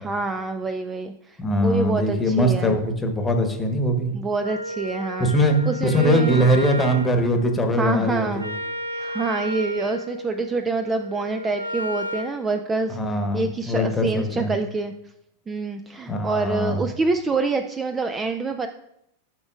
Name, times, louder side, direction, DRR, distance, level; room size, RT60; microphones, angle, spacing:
voice 1, 0.0-2.8 4.1-5.3 5.7-6.5 7.8-8.4 8.9-14.9 15.5-18.7, right 3 dB, 15° right, 8 dB, 0.4 m, -26 dB
voice 2, 1.4-4.1 5.2-5.6 5.8-8.5 12.9-14.5 16.1-16.8, equal, 15° left, 5 dB, 1.1 m, -22 dB
Wind instrument woodwind instrument, 4.4-12.4, equal, 85° right, 0.5 m, -33 dB
12.5 x 6.1 x 2.4 m, 0.78 s
figure-of-eight pair, 90°, 0 cm